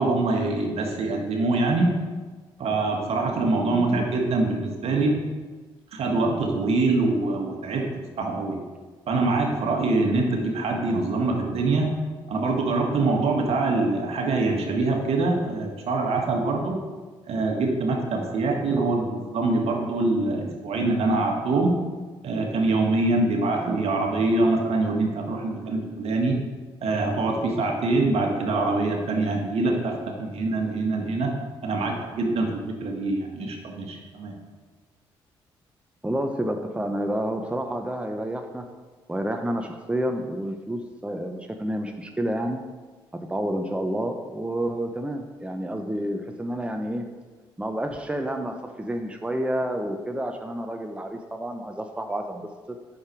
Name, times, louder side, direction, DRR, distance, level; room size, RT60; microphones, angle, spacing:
voice 1, 0.0-2.0 2.6-5.2 5.9-7.9 8.2-8.6 9.1-11.9 12.3-16.8 17.3-21.8 22.2-26.4 26.8-31.3 31.6-32.5 32.8-34.3, right 3 dB, 65° right, 1 dB, 1.8 m, -24 dB
voice 2, 3.7-4.1 18.7-18.9 23.6-23.9 36.0-38.7 39.1-42.6 43.2-47.1 47.6-52.5, right 1 dB, 10° right, 4 dB, 0.9 m, -29 dB
8.5 x 6.7 x 4.8 m, 1.4 s
hypercardioid pair, 50°, 11 cm